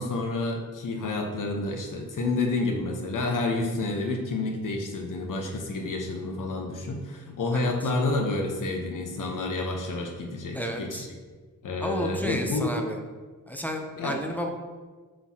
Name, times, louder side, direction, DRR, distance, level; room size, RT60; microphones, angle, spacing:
voice 1, 0.0-11.1 11.6-12.7 14.0-14.2, left 2 dB, 80° left, 2 dB, 1.0 m, -29 dB
voice 2, 7.5-7.9 10.5-11.1 11.8-13.0 13.5-14.5, equal, 5° left, 2 dB, 0.5 m, -32 dB
7.6 x 4.6 x 2.8 m, 1.4 s
wide cardioid pair, 165°, 31 cm